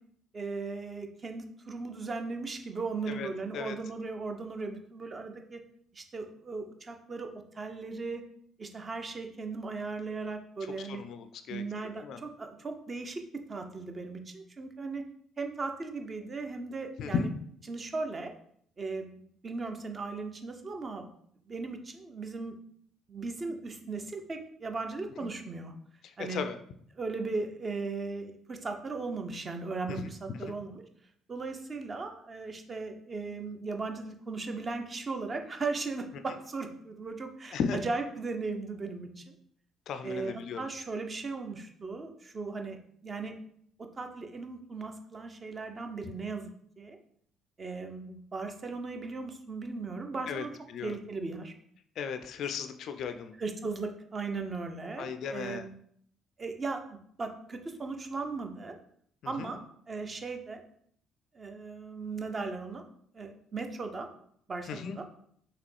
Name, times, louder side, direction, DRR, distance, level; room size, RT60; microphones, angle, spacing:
voice 1, 0.3-5.6 5.9-7.3 7.5-8.2 8.6-11.0 11.5-13.2 13.5-15.0 15.4-17.3 17.7-18.3 18.8-21.0 21.5-22.5 23.1-25.7 26.2-26.4 26.9-30.8 31.3-39.3 40.0-43.3 44.0-46.5 46.8-47.0 47.6-50.5 50.8-51.5 53.4-55.7 56.4-58.8 59.3-59.6 59.9-60.6 61.3-62.9 63.1-64.1 64.5-65.0, right 3 dB, 30° right, 5 dB, 0.6 m, -37 dB
voice 2, 3.1-3.8 10.8-11.6 12.0-12.2 17.0-17.3 25.2-25.3 26.0-26.6 29.9-30.1 30.4-30.5 37.5-37.8 39.9-40.7 50.3-51.0 52.0-53.3 55.0-55.7 59.2-59.5 64.7-65.0, left 6 dB, 50° left, 9 dB, 0.3 m, -36 dB
5.8 x 2.8 x 3.2 m, 0.65 s
figure-of-eight pair, 50°, 0 cm